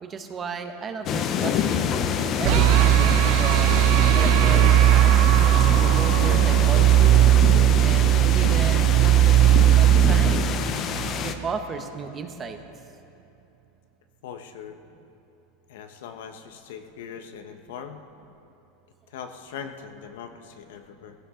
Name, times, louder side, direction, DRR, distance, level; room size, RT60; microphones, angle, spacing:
voice 1, 0.0-1.9 2.4-3.8 4.1-5.3 5.8-7.2 7.8-10.5 11.2-12.6, right 5 dB, 20° right, 6 dB, 0.9 m, -34 dB
sound 1, 1.1-11.3, left 7 dB, 35° left, 0.7 m, -27 dB
sound 2, 2.4-11.5, right 13 dB, 50° right, 0.3 m, -18 dB
voice 2, 14.2-14.8 15.7-18.0 19.1-21.2, left 7 dB, 80° left, 7 dB, 1.1 m, -40 dB
19.5 x 16.0 x 3.8 m, 2.8 s
supercardioid pair, 150°, 0 cm